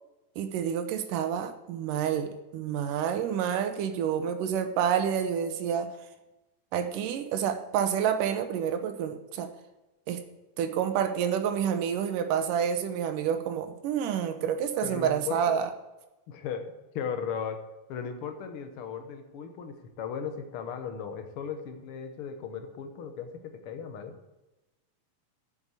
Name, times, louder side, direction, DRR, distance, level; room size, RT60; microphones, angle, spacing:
voice 1, 0.4-5.9 6.7-9.5 10.1-10.2 10.6-15.7, right 8 dB, 85° right, 8 dB, 2.5 m, -28 dB
voice 2, 14.8-15.7 16.3-17.6 17.9-24.2, left 7 dB, 65° left, 7 dB, 1.4 m, -37 dB
7.8 x 7.5 x 8.2 m, 1.0 s
omnidirectional pair, 3.7 m